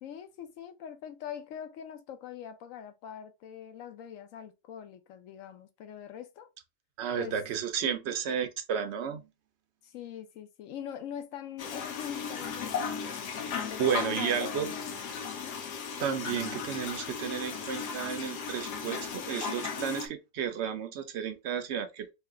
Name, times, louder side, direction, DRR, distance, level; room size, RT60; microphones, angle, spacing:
voice 1, 0.0-6.5 7.2-7.3 7.8-8.2 9.8-15.6, left 9 dB, 65° left, 0.9 m, -43 dB
voice 2, 7.0-9.3 13.8-14.7 16.0-22.1, right 8 dB, 60° right, 0.7 m, -32 dB
sound 1, 11.6-20.1, left 6 dB, 90° left, 1.3 m, -36 dB
3.2 x 2.8 x 3.5 m
omnidirectional pair, 1.7 m